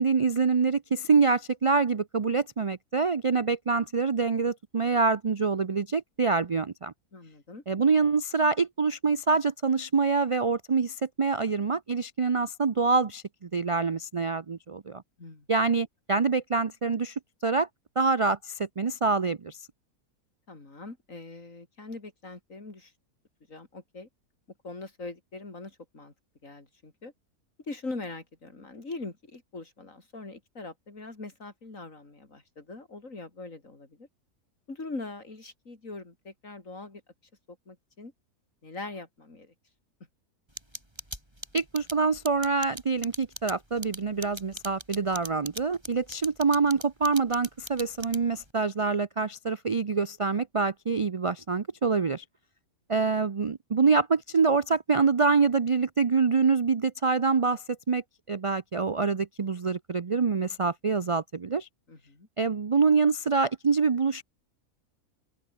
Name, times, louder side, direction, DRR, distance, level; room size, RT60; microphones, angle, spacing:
voice 1, 0.0-6.9 7.7-15.0 15.5-17.7 18.0-19.6 41.5-52.2 52.9-58.0 58.3-61.7 62.4-64.2, right 4 dB, 60° right, 0.3 m, -25 dB
voice 2, 7.1-7.6 15.2-15.5 20.5-22.9 23.5-24.1 24.6-26.1 26.4-27.1 27.6-34.1 34.7-37.0 37.5-38.1 38.6-39.5 61.9-62.3, left 3 dB, 60° left, 4.4 m, -42 dB
sound 1, 40.6-48.5, right 1 dB, 15° right, 7.5 m, -39 dB
open air
omnidirectional pair, 1.5 m